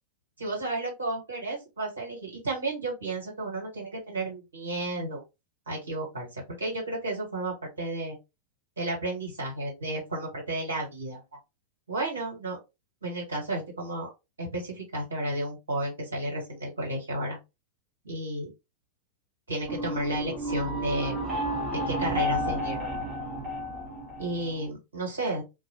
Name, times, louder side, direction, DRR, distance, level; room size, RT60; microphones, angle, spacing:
voice 1, 0.4-5.2 5.7-8.2 8.8-11.2 11.9-12.6 13.0-14.1 14.4-17.4 18.0-18.5 19.5-21.2 21.8-22.9 24.2-25.4, right 2 dB, 70° right, -2 dB, 1.4 m, -32 dB
sound 1, 19.6-24.7, equal, 25° right, 0.9 m, -31 dB
2.4 x 2.2 x 2.9 m, 0.24 s
figure-of-eight pair, 90°, 0 cm